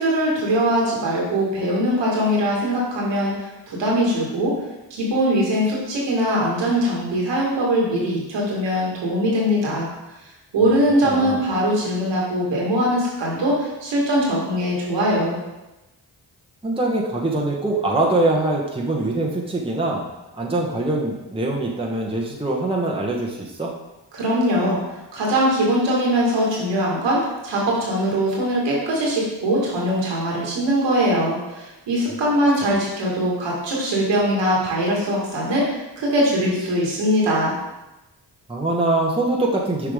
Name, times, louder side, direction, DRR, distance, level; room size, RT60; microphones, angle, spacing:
voice 1, 0.0-4.6 4.9-9.9 10.5-15.4 24.1-24.8 25.1-37.5, equal, 90° right, -4 dB, 2.1 m, -21 dB
voice 2, 11.0-11.4 16.6-20.1 20.3-23.7 38.5-39.9, right 2 dB, 15° right, -2 dB, 1.2 m, -23 dB
6.5 x 4.9 x 3.7 m, 1.0 s
supercardioid pair, 45°, 42 cm